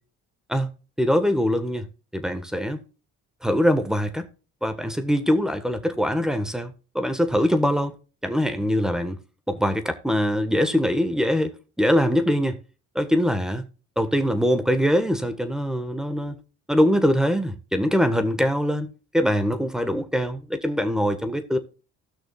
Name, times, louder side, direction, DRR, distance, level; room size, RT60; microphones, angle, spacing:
voice 1, 1.0-1.9 2.1-2.8 3.4-4.2 4.6-7.9 8.2-9.2 9.5-11.5 11.8-12.6 12.9-13.6 14.0-16.4 16.7-21.6, equal, ahead, 1.4 m, -23 dB
16.5 x 6.2 x 2.4 m
cardioid pair, 90°, 30 cm